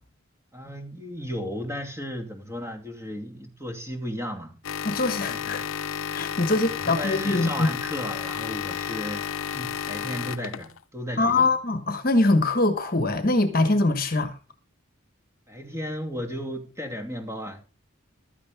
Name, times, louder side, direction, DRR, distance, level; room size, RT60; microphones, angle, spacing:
voice 1, 0.5-4.6 5.3-5.7 6.5-11.5 15.5-17.6, equal, 15° right, 2.7 m, -35 dB
sound 1, 4.6-10.8, left 8 dB, 80° left, 0.5 m, -32 dB
voice 2, 4.8-5.6 6.1-7.7 11.2-14.3, left 2 dB, 45° left, 1.3 m, -23 dB
15.0 x 12.5 x 3.6 m
head